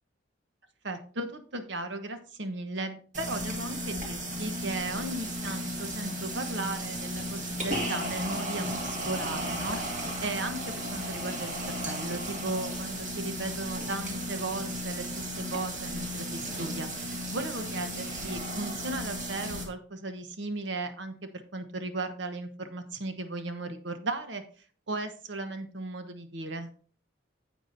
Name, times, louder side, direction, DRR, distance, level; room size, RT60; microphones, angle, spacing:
voice 1, 0.8-24.4 24.9-26.7, right 2 dB, 75° right, 7 dB, 1.1 m, -36 dB
sound 1, 3.1-19.7, equal, 40° right, 1.9 m, -35 dB
9.4 x 8.2 x 2.7 m, 0.42 s
head